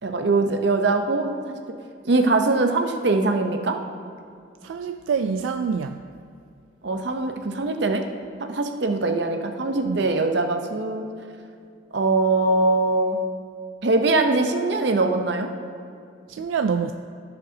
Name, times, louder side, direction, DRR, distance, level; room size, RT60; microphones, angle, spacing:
voice 1, 0.0-1.6 2.0-3.8 6.8-8.0 8.4-11.1 11.9-13.2 13.8-15.5, right 3 dB, 60° right, 5 dB, 0.7 m, -22 dB
voice 2, 4.6-6.0 9.8-10.0 16.3-16.9, right 6 dB, 85° right, 7 dB, 0.3 m, -26 dB
15.0 x 6.8 x 2.8 m, 2.3 s
head